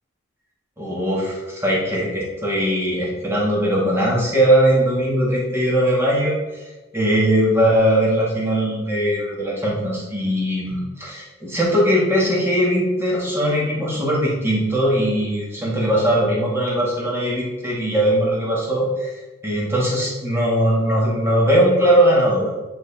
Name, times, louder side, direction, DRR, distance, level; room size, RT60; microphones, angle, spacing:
voice 1, 0.8-6.3 6.9-19.1 19.4-22.5, equal, 10° right, -4 dB, 1.6 m, -20 dB
9.2 x 4.2 x 4.2 m, 1.1 s
head